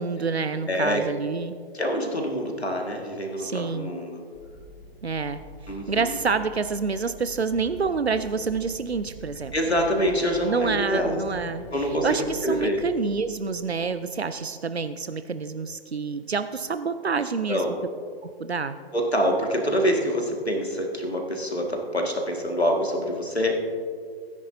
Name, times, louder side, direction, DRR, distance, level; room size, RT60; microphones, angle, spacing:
voice 1, 0.0-1.6 3.4-3.9 5.0-9.5 10.4-17.6 18.2-18.8, right 5 dB, 90° right, 11 dB, 0.5 m, -28 dB
voice 2, 0.7-1.0 1.7-4.2 5.7-6.2 9.5-11.2 11.7-12.8 17.5-17.7 18.9-23.6, equal, 85° left, 1 dB, 1.9 m, -26 dB
sound 1, 4.3-13.2, right 2 dB, 10° right, 1.7 m, -45 dB
17.0 x 9.8 x 2.7 m, 2.1 s
figure-of-eight pair, 120°, 31 cm